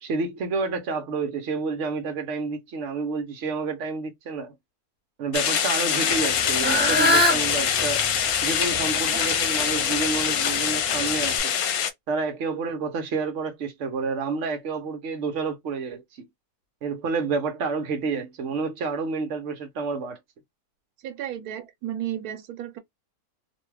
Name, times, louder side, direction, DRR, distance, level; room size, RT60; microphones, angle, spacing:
voice 1, 0.0-4.5 5.2-8.0 8.4-11.6 12.1-16.3 16.8-20.2, right 4 dB, 60° right, 1.0 m, -29 dB
sound 1, 5.3-11.9, left 8 dB, 80° left, 1.1 m, -24 dB
Fowl / Bird, 6.1-11.4, left 1 dB, 10° right, 0.8 m, -27 dB
voice 2, 21.0-22.8, right 11 dB, 85° right, 1.2 m, -33 dB
2.8 x 2.2 x 3.2 m
omnidirectional pair, 1.6 m